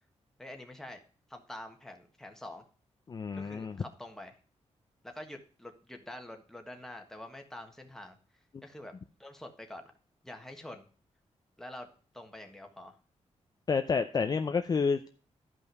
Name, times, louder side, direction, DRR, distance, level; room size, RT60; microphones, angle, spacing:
voice 1, 0.4-1.0 1.3-2.6 3.3-4.4 5.0-8.2 8.6-8.9 9.2-9.8 10.2-10.9 11.6-11.9 12.1-12.9, left 1 dB, 5° left, 3 dB, 1.5 m, -46 dB
voice 2, 3.1-3.8 8.5-8.6 13.7-15.1, left 5 dB, 35° left, 7 dB, 0.5 m, -29 dB
12.5 x 5.5 x 4.7 m, 0.40 s
wide cardioid pair, 160°, 12 cm